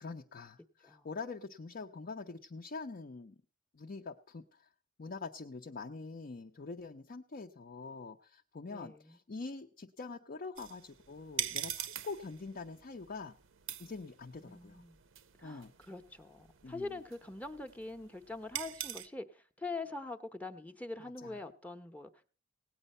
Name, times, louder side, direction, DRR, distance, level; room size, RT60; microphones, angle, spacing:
voice 1, 0.0-3.4 3.7-4.7 5.0-13.4 13.8-14.8 15.4-15.7 16.6-16.9 21.2-21.4, left 4 dB, 45° left, 3 dB, 0.6 m, -45 dB
voice 2, 8.7-9.2 14.4-15.0 15.4-22.3, left 3 dB, 10° left, 7 dB, 0.7 m, -44 dB
sound 1, 10.6-19.1, right 11 dB, 80° right, 0.7 m, -44 dB
17.5 x 9.0 x 5.3 m, 0.39 s
head